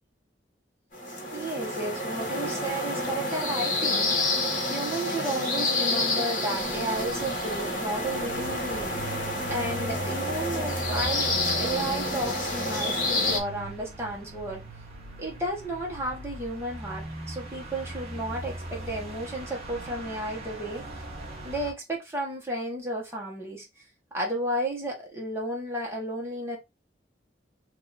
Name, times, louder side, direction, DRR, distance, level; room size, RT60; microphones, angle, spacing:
sound 1, 0.9-13.4, left 2 dB, 45° left, 1.3 m, -29 dB
voice 1, 1.3-4.1 4.7-9.0 9.5-14.6 15.2-20.9 21.4-23.7 24.1-26.6, right 1 dB, 15° right, 1.2 m, -33 dB
sound 2, 6.5-21.7, right 1 dB, 35° right, 1.1 m, -39 dB
3.0 x 2.7 x 3.9 m
head